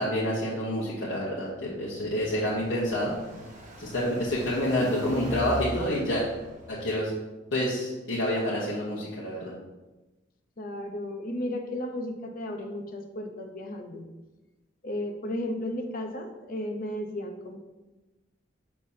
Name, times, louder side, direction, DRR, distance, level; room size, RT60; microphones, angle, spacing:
voice 1, 0.0-3.2 3.8-6.2 6.7-7.1 7.5-9.5, left 1 dB, 70° left, -7 dB, 1.2 m, -28 dB
Car passing by, 1.7-7.1, right 1 dB, 40° right, 1.3 m, -41 dB
voice 2, 10.6-14.0 14.8-17.6, left 1 dB, 50° left, 4 dB, 0.8 m, -34 dB
6.8 x 5.8 x 2.8 m, 1.1 s
head